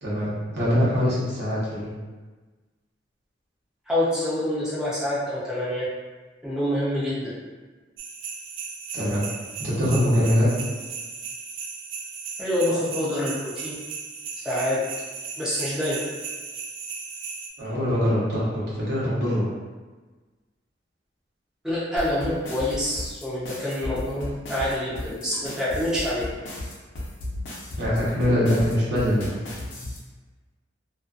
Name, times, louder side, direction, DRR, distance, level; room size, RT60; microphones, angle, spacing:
voice 1, 0.0-1.9 8.9-9.3 9.6-10.5 17.6-19.5 27.8-29.3, equal, 65° right, -8 dB, 0.9 m, -23 dB
voice 2, 3.9-5.9 6.4-7.3 12.4-13.7 14.4-14.8 15.4-16.0 21.6-26.3, left 1 dB, 5° right, -9 dB, 0.5 m, -26 dB
sound 1, 8.0-17.5, right 5 dB, 90° right, 0.4 m, -36 dB
sound 2, 22.0-30.0, left 1 dB, 70° left, 0.7 m, -34 dB
2.5 x 2.3 x 2.4 m, 1.3 s
head